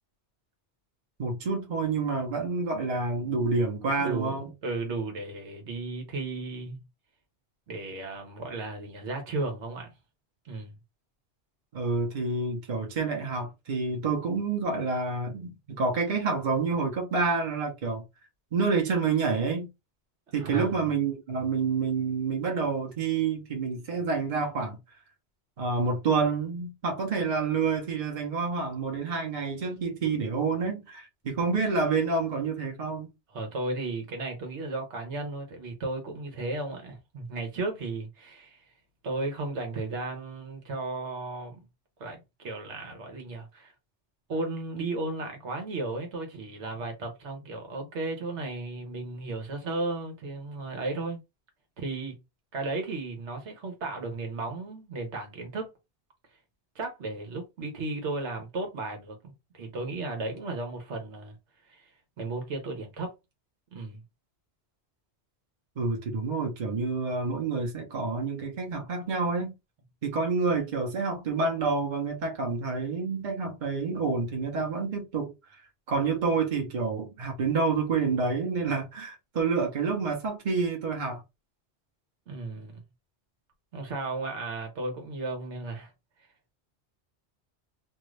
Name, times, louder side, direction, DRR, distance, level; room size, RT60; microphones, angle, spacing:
voice 1, 1.2-4.5 11.7-18.0 18.5-19.7 20.3-24.8 25.6-33.1 65.8-69.5 70.0-75.3 75.9-81.2, right 4 dB, 45° right, 1.0 m, -28 dB
voice 2, 4.0-4.3 4.6-6.8 7.7-9.9 10.4-10.8 20.4-20.8 33.3-38.6 39.0-41.6 42.0-43.7 44.3-51.2 51.8-52.2 52.5-55.7 56.7-61.4 61.7-61.8 62.2-63.1 63.7-64.0 82.3-82.8 83.7-85.9, right 2 dB, 85° right, 1.3 m, -34 dB
2.7 x 2.5 x 3.1 m
omnidirectional pair, 1.1 m